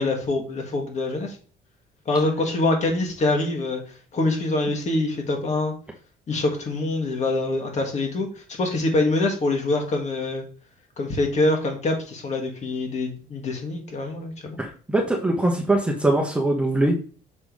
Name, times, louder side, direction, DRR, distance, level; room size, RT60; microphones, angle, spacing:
voice 1, 0.0-1.4 2.1-3.8 4.1-5.7 6.3-10.4 11.0-14.6, left 2 dB, 45° left, 2 dB, 2.3 m, -25 dB
voice 2, 14.6-16.9, right 2 dB, 5° right, 0 dB, 1.1 m, -22 dB
6.4 x 3.7 x 4.8 m, 0.39 s
cardioid pair, 110°, 17 cm